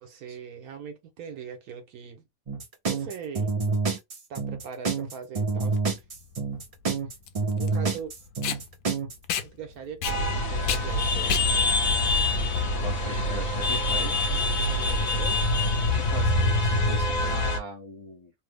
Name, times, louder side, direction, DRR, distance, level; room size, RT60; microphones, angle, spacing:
voice 1, 0.0-2.2 2.9-3.5 4.3-5.8 7.5-8.1 9.4-11.9 14.3-15.5, right 6 dB, 80° right, 1.3 m, -41 dB
sound 1, 2.5-9.2, right 4 dB, 50° right, 0.4 m, -27 dB
Packing tape duct tape, 5.7-13.1, left 9 dB, 85° left, 1.1 m, -34 dB
sound 2, 10.0-17.6, left 2 dB, 65° left, 1.3 m, -25 dB
voice 2, 12.8-14.2 15.9-18.3, equal, 30° left, 0.7 m, -39 dB
3.1 x 2.0 x 3.3 m
omnidirectional pair, 1.6 m